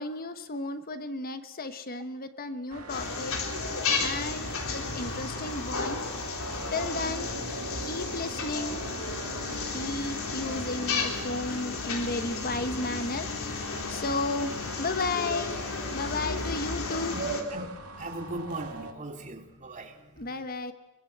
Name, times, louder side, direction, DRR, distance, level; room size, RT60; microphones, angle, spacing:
voice 1, 0.0-3.4 4.0-6.0 6.7-7.3 7.8-8.8 9.7-13.3 13.9-15.6 15.9-17.2 20.2-20.7, left 2 dB, 40° left, 1.2 m, -33 dB
sound 1, 2.7-18.9, right 3 dB, 80° right, 2.4 m, -44 dB
sound 2, 2.9-17.4, left 4 dB, 65° left, 3.4 m, -33 dB
voice 2, 16.9-17.7 18.0-20.5, right 2 dB, 35° right, 2.5 m, -37 dB
22.5 x 22.5 x 8.0 m
head